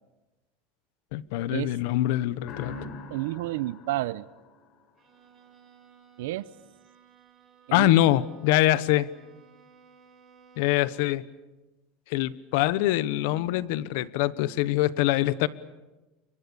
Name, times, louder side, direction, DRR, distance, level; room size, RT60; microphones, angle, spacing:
voice 1, 1.1-2.8 7.7-9.1 10.6-11.2 12.1-15.5, left 15 dB, 70° left, 1.0 m, -24 dB
sound 1, 2.4-5.1, left 3 dB, 45° left, 4.0 m, -43 dB
voice 2, 3.1-4.2 6.2-6.5 7.7-8.1, right 17 dB, 90° right, 0.8 m, -30 dB
Bowed string instrument, 5.0-11.2, right 6 dB, 25° right, 4.9 m, -57 dB
28.5 x 24.0 x 7.0 m
supercardioid pair, 150°, 0 cm